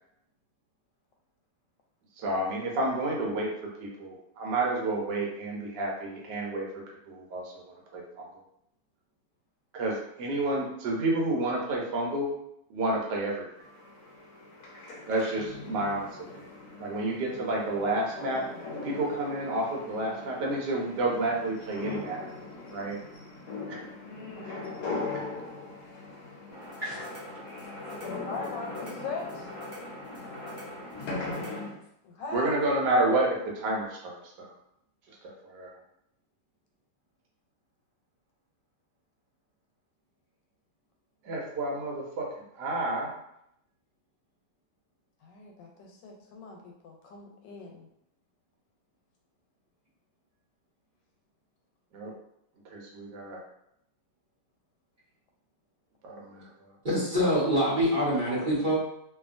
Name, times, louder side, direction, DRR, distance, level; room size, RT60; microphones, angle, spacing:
voice 1, 2.2-3.5 3.8-6.7 7.1-7.6 7.9-8.2 9.7-12.3 12.7-13.5 15.1-16.1 16.4-16.5 16.8-18.4 18.8-22.2 22.7-23.0 23.7-23.8 24.4-24.6 32.3-34.5 35.4-35.7 41.2-42.3 42.6-43.1 51.9-52.1 52.7-53.4 56.0-56.5, right 2 dB, 75° right, -2 dB, 1.3 m, -30 dB
sound 1, 13.6-31.8, left 3 dB, 70° left, 1.0 m, -40 dB
voice 2, 24.0-24.7 28.2-29.5 32.0-32.7 45.2-47.9, left 4 dB, 90° left, 1 dB, 1.3 m, -40 dB
sound 2, 26.5-31.7, equal, 30° left, 0.5 m, -43 dB
voice 3, 56.8-58.8, equal, 40° right, -10 dB, 0.7 m, -25 dB
2.7 x 2.5 x 2.5 m, 0.76 s
omnidirectional pair, 1.9 m